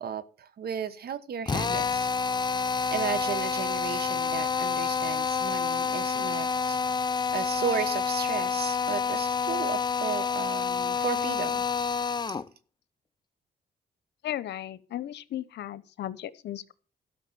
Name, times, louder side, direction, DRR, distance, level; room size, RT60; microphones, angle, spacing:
voice 1, 0.0-2.1 2.9-6.8 7.3-11.6 12.3-12.4, right 7 dB, 65° right, 1.2 m, -34 dB
Drill, 1.5-12.5, left 5 dB, 25° left, 0.6 m, -28 dB
voice 2, 14.2-16.7, left 12 dB, 80° left, 0.9 m, -36 dB
13.0 x 5.9 x 8.4 m
cardioid pair, 90°, 17 cm